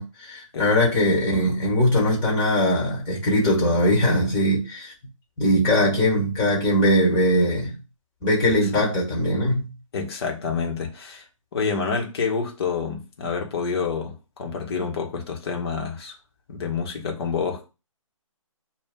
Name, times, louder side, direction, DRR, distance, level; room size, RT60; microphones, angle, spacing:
voice 1, 0.0-4.9 5.4-7.7 8.2-9.7, left 1 dB, 15° left, 1.6 m, -21 dB
voice 2, 8.4-8.9 9.9-11.3 11.5-16.1 16.5-17.6, left 5 dB, 45° left, 1.1 m, -28 dB
7.1 x 2.4 x 2.3 m
figure-of-eight pair, 145°, 18 cm